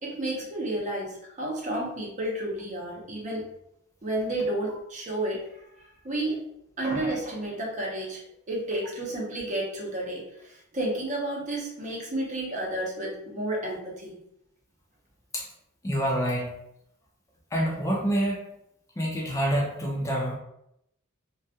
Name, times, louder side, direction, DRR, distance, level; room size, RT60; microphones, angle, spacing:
voice 1, 0.0-3.4 4.0-5.4 6.0-6.4 6.8-8.2 8.5-14.2, right 1 dB, 35° right, -2 dB, 0.6 m, -31 dB
voice 2, 15.8-16.5 17.5-18.4 19.0-20.4, equal, 15° left, -3 dB, 0.4 m, -27 dB
2.2 x 2.1 x 2.7 m, 0.78 s
head